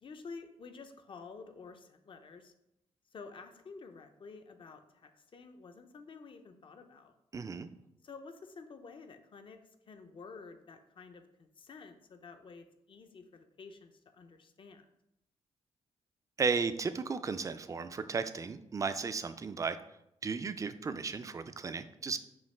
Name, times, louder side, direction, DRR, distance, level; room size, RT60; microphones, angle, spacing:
voice 1, 0.0-2.5 3.1-7.1 8.0-9.6 9.9-14.9, left 4 dB, 45° left, 7 dB, 0.6 m, -50 dB
voice 2, 7.3-7.7 16.4-19.8 20.2-22.2, right 5 dB, 30° right, 11 dB, 0.3 m, -34 dB
5.6 x 2.3 x 3.3 m, 0.82 s
cardioid pair, 65°, 12 cm